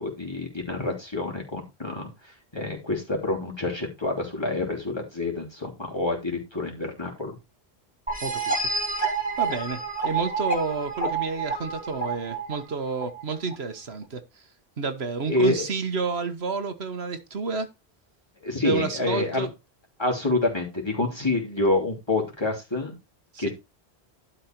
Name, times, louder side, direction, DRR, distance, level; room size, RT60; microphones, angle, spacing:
voice 1, 0.0-2.1 2.5-7.3 15.3-15.7 18.4-19.5 20.0-22.9 23.4-23.5, left 2 dB, 25° left, 3.1 m, -27 dB
sound 1, 8.1-13.5, right 4 dB, 10° right, 2.6 m, -29 dB
voice 2, 8.2-9.0 9.4-14.4 14.8-17.7 18.6-19.5 23.3-23.5, right 4 dB, 80° right, 1.5 m, -30 dB
12.0 x 4.8 x 4.5 m
omnidirectional pair, 1.1 m